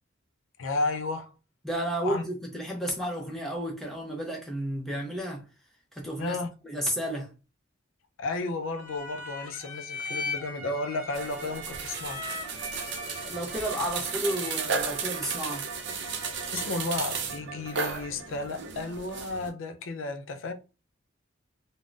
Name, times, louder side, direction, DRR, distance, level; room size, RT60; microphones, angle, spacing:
voice 1, 0.6-1.4 2.0-2.2 6.2-6.5 8.2-12.3 16.5-20.5, left 3 dB, 70° left, 0.5 m, -33 dB
voice 2, 1.6-5.4 5.9-6.4 6.6-7.3 13.2-15.7, equal, ahead, 0.6 m, -32 dB
sound 1, 8.7-16.8, left 3 dB, 40° left, 0.7 m, -40 dB
sound 2, 11.1-19.5, right 5 dB, 55° right, 0.5 m, -34 dB
3.6 x 2.0 x 2.4 m
head